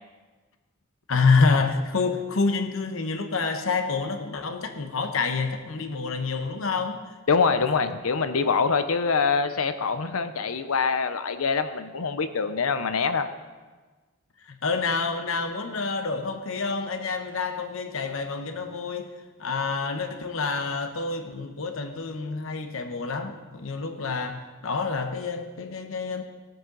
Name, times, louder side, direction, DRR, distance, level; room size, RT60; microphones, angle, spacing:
voice 1, 1.1-7.0 14.5-19.1 19.4-26.2, left 4 dB, 70° left, 7 dB, 1.0 m, -27 dB
voice 2, 7.3-13.3, left 5 dB, 90° left, 10 dB, 0.7 m, -24 dB
18.0 x 7.8 x 3.9 m, 1.3 s
head